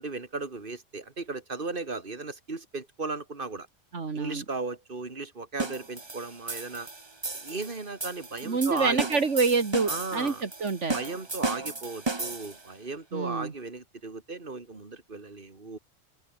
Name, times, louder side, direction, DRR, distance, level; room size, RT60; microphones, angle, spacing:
voice 1, 0.0-3.7 4.1-6.9 7.3-9.0 9.9-10.4 10.9-15.8, right 3 dB, 45° right, 2.9 m, -36 dB
voice 2, 3.9-4.4 8.4-11.0 13.1-13.5, right 4 dB, 70° right, 2.4 m, -27 dB
sound 1, 5.6-12.7, right 3 dB, 20° right, 1.2 m, -35 dB
open air
omnidirectional pair, 1.3 m